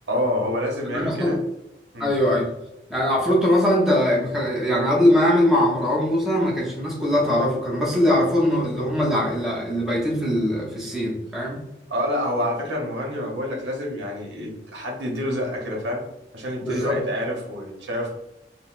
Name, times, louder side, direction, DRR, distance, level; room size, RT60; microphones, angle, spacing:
voice 1, 0.1-1.4 1.9-2.1 11.9-16.0 16.3-18.1, equal, 90° right, 0 dB, 0.8 m, -27 dB
voice 2, 0.9-1.4 2.0-2.5 2.9-11.6 16.6-17.0, left 1 dB, 5° right, -5 dB, 0.6 m, -21 dB
3.8 x 2.0 x 2.4 m, 0.89 s
head